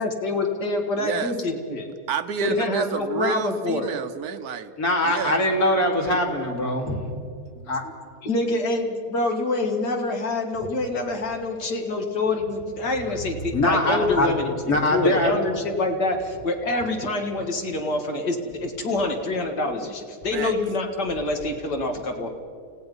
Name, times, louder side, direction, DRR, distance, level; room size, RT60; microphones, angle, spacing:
voice 1, 0.0-1.9 2.4-3.9 8.2-22.3, left 2 dB, 80° left, 3 dB, 2.5 m, -26 dB
voice 2, 1.0-1.3 2.1-4.7 5.0-5.4 7.6-7.7 20.3-20.5, right 7 dB, 70° right, 11 dB, 1.2 m, -29 dB
voice 3, 4.8-7.0 7.7-7.8 13.5-14.3 14.7-15.4, left 1 dB, 60° left, 2 dB, 2.9 m, -22 dB
28.5 x 16.5 x 5.4 m, 2.3 s
omnidirectional pair, 1.8 m